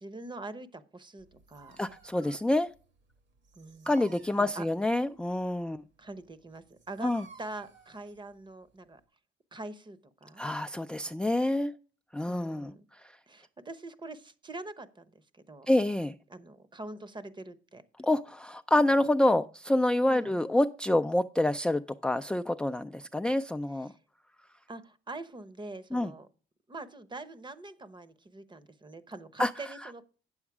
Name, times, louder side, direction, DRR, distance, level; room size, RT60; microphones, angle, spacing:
voice 1, 0.0-1.8 3.5-3.9 4.4-4.7 6.0-7.1 7.4-9.0 9.5-10.4 12.3-12.9 13.3-15.7 16.3-17.8 20.0-20.4 23.9-24.0 24.7-26.3 26.7-30.0, right 2 dB, 25° right, 0.9 m, -44 dB
Dog, 1.2-9.0, right 5 dB, 65° right, 1.9 m, -56 dB
voice 2, 1.8-2.7 3.9-5.8 7.0-7.2 10.4-11.7 12.1-13.1 15.7-16.1 18.0-23.9 25.9-26.1 29.4-29.5, left 1 dB, 5° left, 0.4 m, -27 dB
8.8 x 7.2 x 4.8 m
cardioid pair, 90°, 20 cm